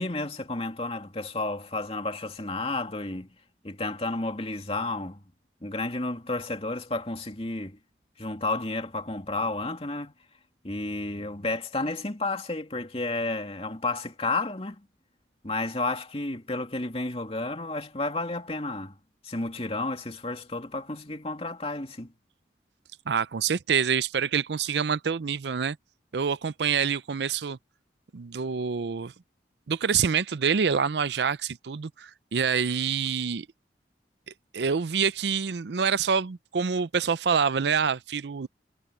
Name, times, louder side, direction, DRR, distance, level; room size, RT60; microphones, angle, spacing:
voice 1, 0.0-3.3 3.6-5.2 5.6-7.8 8.2-10.1 10.6-14.8 15.4-18.9 19.2-22.1, left 2 dB, 35° left, 2.5 m, -31 dB
voice 2, 23.1-25.8 26.1-27.6 28.1-29.1 29.7-33.5 34.5-38.5, right 6 dB, 70° right, 0.5 m, -26 dB
head